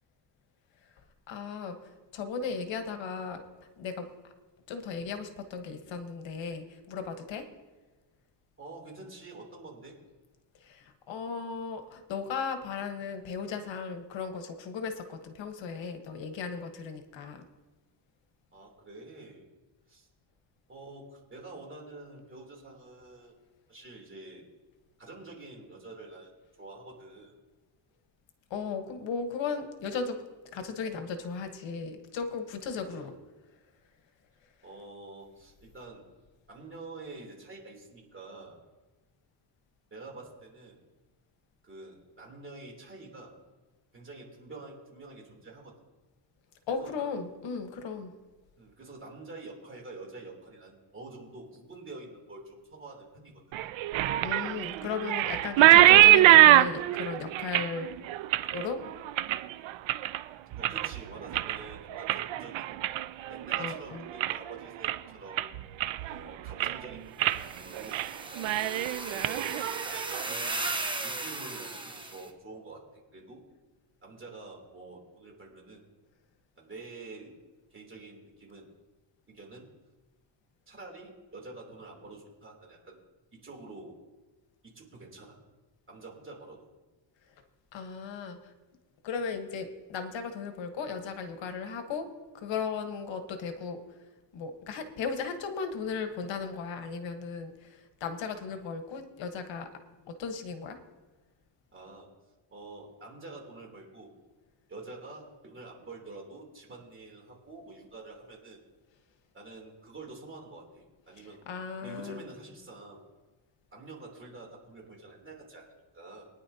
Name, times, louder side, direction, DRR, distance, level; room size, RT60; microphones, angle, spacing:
voice 1, 1.3-1.8 2.1-3.4 3.8-4.1 4.7-7.4 10.6-17.4 28.5-30.2 30.5-33.1 46.7-48.1 54.2-57.9 58.5-58.8 63.6-64.0 87.7-88.4 89.0-92.1 92.3-93.8 94.3-97.7 98.0-99.7 100.1-100.8 111.5-112.2, left 5 dB, 75° left, 7 dB, 1.3 m, -36 dB
voice 2, 8.6-10.0 18.5-19.5 19.9-20.1 20.7-23.3 23.7-24.4 25.0-26.3 26.6-27.3 32.9-33.2 34.6-36.1 36.5-38.6 39.9-40.8 41.6-43.3 43.9-45.7 46.7-47.0 48.6-53.7 60.5-62.7 63.3-65.5 66.1-68.0 69.1-69.5 70.2-73.4 74.0-75.8 76.6-77.3 77.7-78.7 79.3-79.7 80.7-83.0 83.3-83.9 84.6-85.4 85.9-86.6 101.7-102.1 102.5-104.1 104.7-108.6 109.3-111.4 111.8-113.0 113.7-116.3, right 3 dB, 25° right, -1 dB, 3.1 m, -47 dB
sound 1, 53.5-60.2 60.5-61.0 61.3-63.8 64.1-64.5 64.8-65.0 65.4-66.2 66.5-66.8 67.2-67.4 67.7-68.1 68.4-70.2, right 14 dB, 85° right, 0.6 m, -23 dB
sound 2, 67.3-72.2, right 2 dB, 10° right, 1.0 m, -36 dB
23.0 x 9.8 x 2.8 m, 1.2 s
cardioid pair, 140°, 45 cm